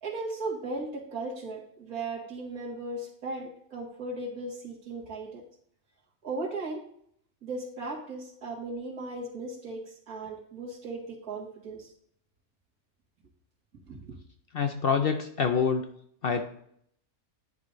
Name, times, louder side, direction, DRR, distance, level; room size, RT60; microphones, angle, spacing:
voice 1, 0.0-5.4 6.2-6.8 7.4-11.9 13.9-14.1, right 2 dB, 90° right, -2 dB, 2.4 m, -37 dB
voice 2, 14.5-15.9 16.2-16.4, left 6 dB, 55° left, 6 dB, 0.6 m, -26 dB
10.5 x 4.9 x 2.6 m, 0.67 s
omnidirectional pair, 1.5 m